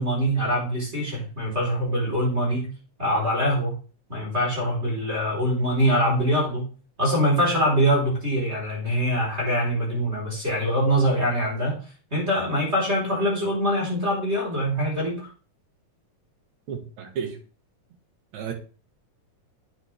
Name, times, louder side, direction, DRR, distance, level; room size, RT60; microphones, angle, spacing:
voice 1, 0.0-2.7 3.0-3.7 4.1-6.6 7.0-11.8 12.1-15.3, equal, 20° right, 4.5 m, -24 dB
voice 2, 16.7-17.4 18.3-18.5, right 7 dB, 65° right, 2.8 m, -32 dB
9.0 x 8.6 x 3.5 m
omnidirectional pair, 3.7 m